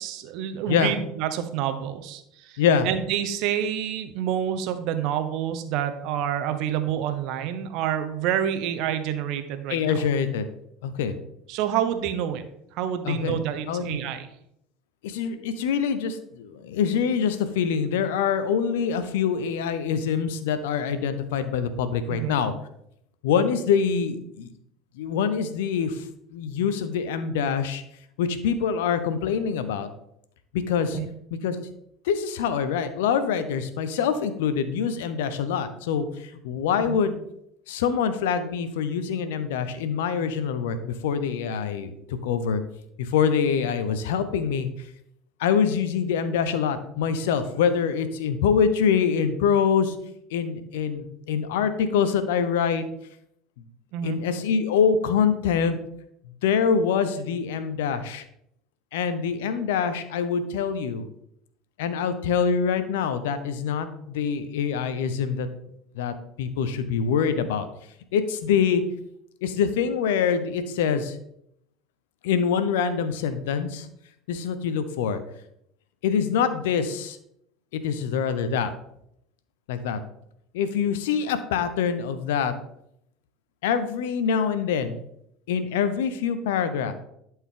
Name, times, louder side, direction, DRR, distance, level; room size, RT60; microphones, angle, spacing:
voice 1, 0.0-9.8 11.5-12.4 12.7-14.3 22.1-22.4 30.9-31.1 36.8-37.0 53.9-54.2, right 10 dB, 65° right, 9 dB, 0.9 m, -28 dB
voice 2, 2.6-2.9 9.7-10.5 10.8-11.1 13.0-13.4 13.7-14.0 15.0-22.5 23.2-24.5 25.0-26.0 26.3-27.8 28.2-29.9 30.5-31.0 31.4-31.6 32.0-37.2 37.7-42.6 43.0-44.7 45.4-50.0 50.3-52.8 54.0-55.8 56.4-58.2 58.9-61.0 61.8-65.5 65.9-67.7 68.1-68.8 69.4-71.2 72.2-73.9 74.3-75.2 76.0-77.2 77.7-78.7 79.7-80.0 80.5-82.5 83.6-85.0 85.5-86.9, left 7 dB, 80° left, 11 dB, 0.8 m, -25 dB
11.5 x 4.6 x 3.8 m, 0.76 s
hypercardioid pair, 75°, 0 cm